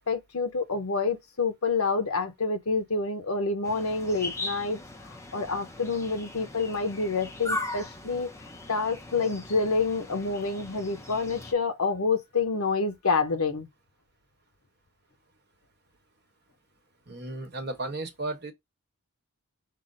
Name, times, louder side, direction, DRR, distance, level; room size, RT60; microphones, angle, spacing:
voice 1, 0.1-4.8 5.0-8.3 8.7-13.7, left 4 dB, 70° left, 0.8 m, -28 dB
sound 1, 3.6-11.5, left 2 dB, 15° left, 0.5 m, -39 dB
voice 2, 17.1-18.5, right 2 dB, 45° right, 1.1 m, -34 dB
5.6 x 2.1 x 3.7 m
head